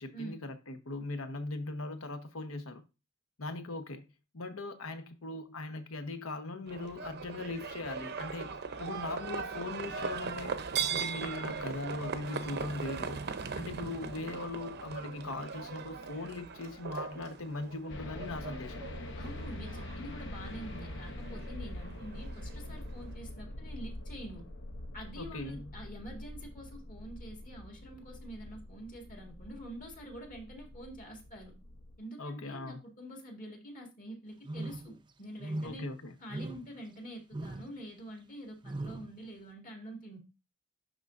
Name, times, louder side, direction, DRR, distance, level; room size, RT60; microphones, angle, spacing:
voice 1, 0.0-2.8 3.4-4.1 4.3-10.5 10.9-13.2 13.6-18.8 25.2-25.8 32.2-32.8 35.6-36.1, left 2 dB, 80° left, 1.1 m, -40 dB
Livestock farm animals working animals, 6.7-23.1, right 5 dB, 55° right, 0.7 m, -40 dB
sound 1, 17.9-32.0, left 1 dB, 60° left, 0.8 m, -44 dB
voice 2, 19.2-24.4 24.9-31.5 32.0-35.9 36.2-40.2, right 1 dB, 40° left, 1.9 m, -46 dB
sound 2, 34.4-35.0 35.4-35.9 36.3-36.8 37.3-37.7 38.6-39.1, right 1 dB, 25° right, 0.5 m, -39 dB
11.5 x 3.9 x 2.5 m
head